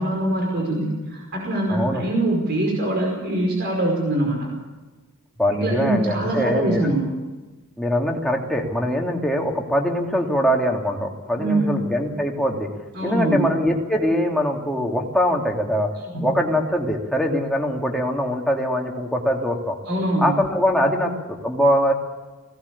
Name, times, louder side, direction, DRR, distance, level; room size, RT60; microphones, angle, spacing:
voice 1, 0.0-4.5 5.5-7.0 11.4-11.8 12.9-13.4 16.1-16.3 19.9-20.3, right 1 dB, 50° right, 1 dB, 5.2 m, -23 dB
voice 2, 1.7-2.0 5.4-6.9 7.8-12.7 13.0-15.9 16.2-19.8 20.2-21.9, equal, ahead, 0 dB, 2.5 m, -22 dB
19.5 x 18.0 x 8.5 m, 1.2 s
head